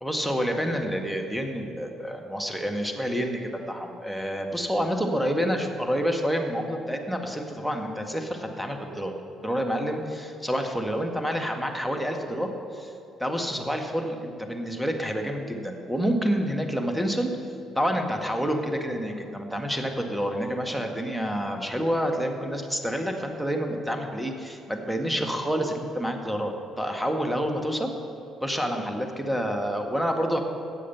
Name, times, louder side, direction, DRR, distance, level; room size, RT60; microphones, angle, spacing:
voice 1, 0.0-9.2 9.4-12.9 13.2-17.3 17.8-27.9 28.4-30.4, equal, ahead, 4 dB, 1.7 m, -28 dB
16.5 x 7.2 x 5.7 m, 2.8 s
hypercardioid pair, 45°, 0 cm